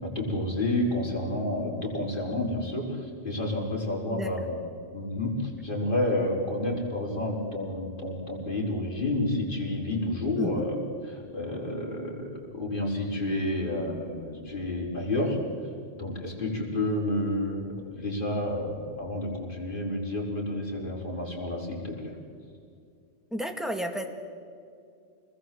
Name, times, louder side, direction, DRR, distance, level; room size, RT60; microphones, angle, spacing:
voice 1, 0.0-4.6 4.9-10.8 11.1-15.4 16.0-22.2, left 1 dB, 45° left, -2 dB, 4.8 m, -30 dB
voice 2, 23.3-24.1, equal, ahead, 4 dB, 2.1 m, -32 dB
27.5 x 20.5 x 7.8 m, 2.3 s
omnidirectional pair, 1.2 m